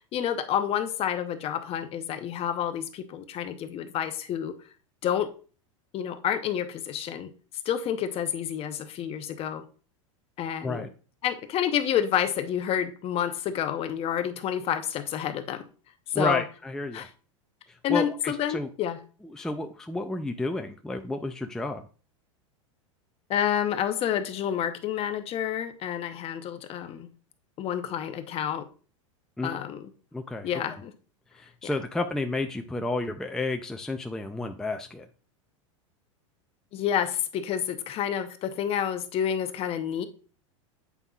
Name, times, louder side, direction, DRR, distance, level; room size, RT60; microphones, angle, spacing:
voice 1, 0.0-4.5 5.0-5.3 5.9-7.3 7.7-9.6 10.4-10.8 11.2-15.6 16.2-16.4 16.9-17.1 17.8-19.0 23.3-27.1 27.6-28.6 29.4-29.9 30.4-30.9 36.7-40.1, left 9 dB, 35° left, 0.8 m, -29 dB
voice 2, 16.1-17.1 17.7-18.7 19.3-21.8 29.4-29.6 30.1-30.8 31.3-35.1, left 2 dB, 5° left, 0.4 m, -31 dB
8.2 x 5.3 x 2.4 m
hypercardioid pair, 115°, 17 cm